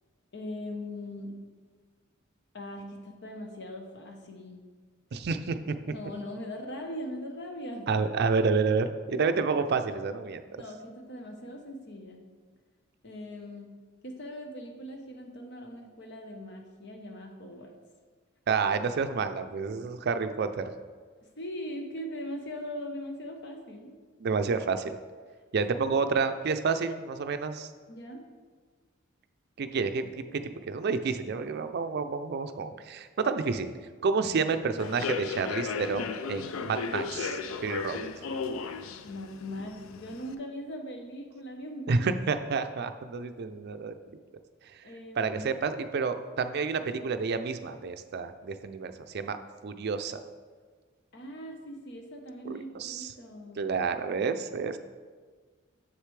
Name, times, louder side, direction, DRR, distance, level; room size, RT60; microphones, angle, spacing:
voice 1, 0.3-1.3 2.5-4.6 5.8-7.9 10.5-12.2 13.0-13.7 14.0-17.7 21.4-23.9 25.7-25.9 27.9-28.2 38.6-38.7 39.0-42.1 44.8-45.4 51.1-53.6, left 1 dB, 60° left, 3 dB, 1.0 m, -40 dB
voice 2, 5.1-5.8 7.9-10.6 18.5-20.7 24.2-25.0 25.5-27.7 29.6-33.7 34.0-38.0 41.9-44.2 45.2-49.4 49.6-50.2 52.4-53.1 53.6-54.8, right 4 dB, 55° right, 9 dB, 0.4 m, -29 dB
Human voice / Subway metro underground, 34.8-40.3, left 5 dB, 90° left, 0.4 m, -35 dB
7.4 x 6.6 x 3.2 m, 1.5 s
head